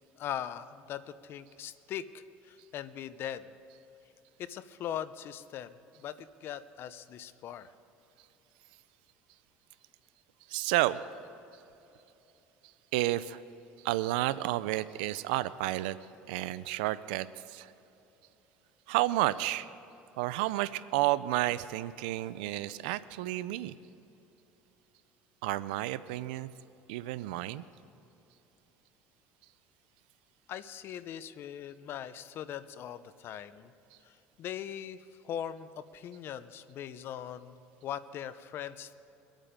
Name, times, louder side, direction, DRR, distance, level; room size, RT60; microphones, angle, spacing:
voice 1, 0.2-3.5 4.4-7.7 30.5-33.7 34.0-38.9, left 10 dB, 50° left, 14 dB, 0.7 m, -40 dB
voice 2, 10.5-11.0 12.9-13.4 13.8-16.0 16.3-17.7 18.9-19.7 20.2-23.7 25.4-26.5 26.9-27.6, right 16 dB, 85° right, 16 dB, 0.4 m, -31 dB
23.5 x 9.0 x 5.2 m, 2.9 s
supercardioid pair, 115°, 5 cm